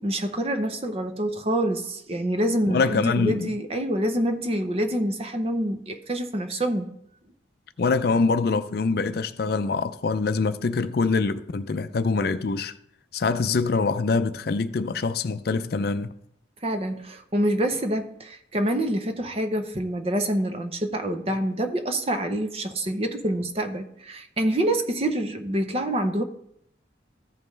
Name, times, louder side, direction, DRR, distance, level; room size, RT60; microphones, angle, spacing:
voice 1, 0.0-6.9 16.6-26.2, right 1 dB, 30° right, 0.7 m, -26 dB
voice 2, 2.7-3.5 7.8-12.7 13.1-16.1, left 4 dB, 55° left, 0.4 m, -24 dB
14.5 x 5.3 x 3.2 m
head